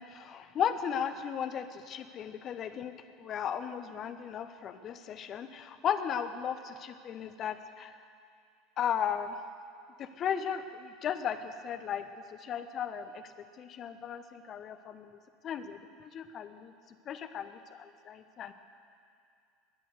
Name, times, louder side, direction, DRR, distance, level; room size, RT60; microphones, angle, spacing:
voice 1, 0.0-7.9 8.8-9.4 10.0-12.1 12.3-13.2 13.6-15.2 15.4-16.7 17.1-18.5, left 8 dB, 40° left, 9 dB, 1.0 m, -36 dB
20.5 x 9.2 x 6.7 m, 2.4 s
figure-of-eight pair, 75°, 0 cm